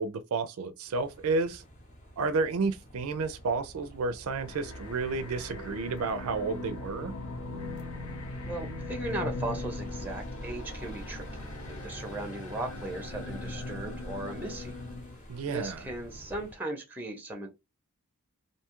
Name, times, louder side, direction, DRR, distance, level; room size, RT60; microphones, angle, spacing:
voice 1, 0.0-1.6 2.2-7.1 15.3-15.9, right 3 dB, 75° right, 0.4 m, -31 dB
sound 1, 0.8-16.6, equal, 40° left, 0.7 m, -46 dB
sound 2, 4.4-15.2, left 2 dB, 75° left, 0.6 m, -40 dB
voice 2, 8.4-11.5 11.8-14.8 15.5-17.5, right 2 dB, 10° right, 0.5 m, -37 dB
2.6 x 2.3 x 2.9 m
head